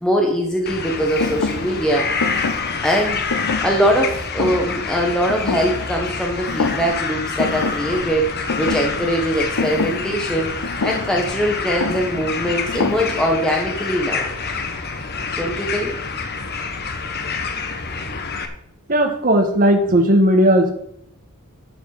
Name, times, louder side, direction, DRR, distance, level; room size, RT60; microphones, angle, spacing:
voice 1, 0.0-2.1 2.8-14.3 15.4-16.0, equal, 5° left, 0 dB, 1.3 m, -22 dB
sound 1, 0.7-18.5, left 4 dB, 45° left, 1.2 m, -27 dB
Thump thud, 1.2-6.2 6.5-7.1 7.4-13.5, left 4 dB, 85° left, 0.8 m, -28 dB
voice 2, 18.9-20.7, right 1 dB, 40° right, 4 dB, 1.7 m, -15 dB
11.0 x 5.2 x 6.6 m, 0.71 s
head